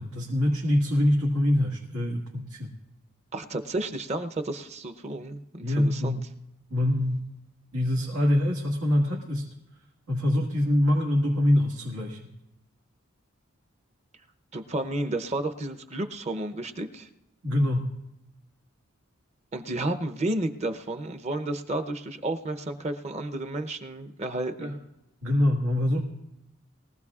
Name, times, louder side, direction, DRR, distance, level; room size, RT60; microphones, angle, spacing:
voice 1, 0.0-2.7 5.6-6.3 6.7-7.3 7.7-9.5 10.1-12.2 17.4-17.9 24.6-24.7 25.2-26.0, left 1 dB, 90° right, -3 dB, 1.8 m, -24 dB
voice 2, 3.3-6.2 14.5-17.1 19.5-24.8, right 2 dB, 30° right, 7 dB, 0.7 m, -32 dB
22.0 x 15.5 x 2.4 m, 0.87 s
head